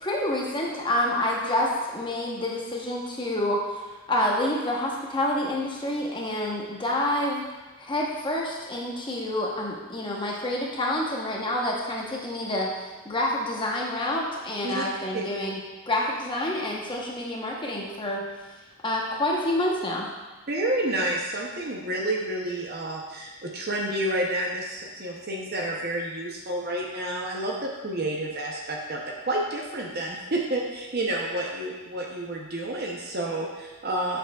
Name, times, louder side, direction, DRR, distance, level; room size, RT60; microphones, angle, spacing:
voice 1, 0.0-3.6 4.1-7.5 7.8-12.7 13.0-15.6 15.9-18.2 18.8-20.1, left 1 dB, 20° left, -2 dB, 0.9 m, -28 dB
voice 2, 20.5-34.2, right 1 dB, 45° right, -1 dB, 0.7 m, -29 dB
7.8 x 6.2 x 2.3 m, 1.3 s
head